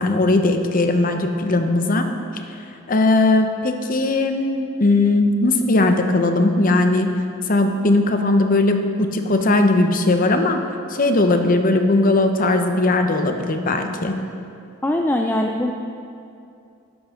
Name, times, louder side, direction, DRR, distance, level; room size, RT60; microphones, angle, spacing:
voice 1, 0.0-2.1 2.9-7.1 7.5-10.6 10.9-14.2, left 2 dB, 45° left, 6 dB, 0.8 m, -18 dB
voice 2, 14.8-15.7, left 1 dB, 10° left, 2 dB, 0.4 m, -21 dB
12.0 x 10.5 x 3.7 m, 2.5 s
head